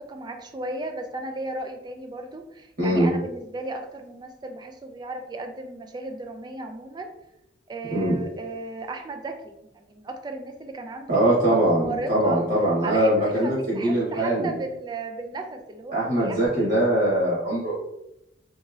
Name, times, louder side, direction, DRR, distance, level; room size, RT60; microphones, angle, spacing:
voice 1, 0.0-7.1 7.7-11.1 11.4-12.4 12.8-16.7, right 2 dB, 25° right, 5 dB, 0.3 m, -35 dB
voice 2, 2.8-3.1 7.9-8.2 11.1-14.5 15.9-17.7, right 1 dB, 55° right, -7 dB, 1.2 m, -22 dB
2.9 x 2.7 x 2.4 m, 0.85 s
head